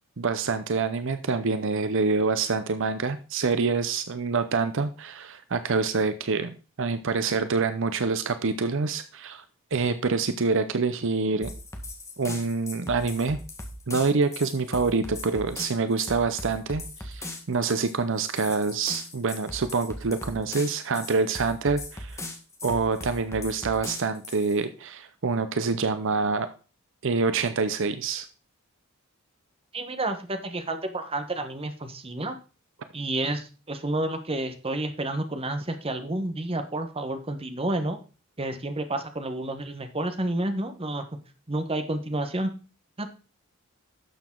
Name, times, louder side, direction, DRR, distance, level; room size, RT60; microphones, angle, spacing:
voice 1, 0.2-9.4 9.7-11.5 12.2-13.4 13.9-22.2 22.6-26.5 27.0-28.3, right 4 dB, 60° right, 11 dB, 0.7 m, -26 dB
sound 1, 11.4-24.6, left 2 dB, 15° left, 1.6 m, -39 dB
voice 2, 29.7-32.4 32.9-38.0 38.4-41.1 41.5-42.5 43.0-43.1, right 1 dB, 25° right, 8 dB, 1.1 m, -30 dB
12.0 x 7.0 x 3.8 m, 0.33 s
head